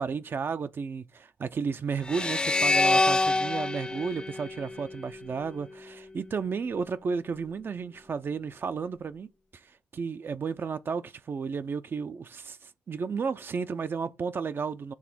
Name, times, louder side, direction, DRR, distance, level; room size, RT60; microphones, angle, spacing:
voice 1, 0.0-9.3 9.6-14.9, right 5 dB, 50° right, 0.6 m, -33 dB
sound 1, 2.0-5.3, left 2 dB, 20° left, 0.4 m, -26 dB
7.3 x 3.3 x 6.1 m
supercardioid pair, 55°, 5 cm